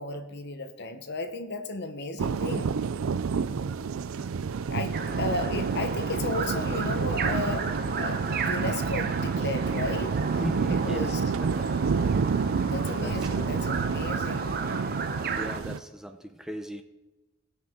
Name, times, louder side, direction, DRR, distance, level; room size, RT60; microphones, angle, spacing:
voice 1, 0.0-2.7 4.7-7.7 8.0-10.2 10.7-11.2 12.7-14.6, left 2 dB, 55° left, 8 dB, 1.0 m, -34 dB
sound 1, 2.2-15.8, right 5 dB, 85° right, 0.4 m, -29 dB
sound 2, 4.9-15.6, right 4 dB, 50° right, 0.9 m, -33 dB
voice 2, 10.4-11.1 11.4-11.7 13.0-13.6 15.3-16.8, equal, 5° right, 6 dB, 0.6 m, -37 dB
18.5 x 6.4 x 3.7 m, 1.1 s
head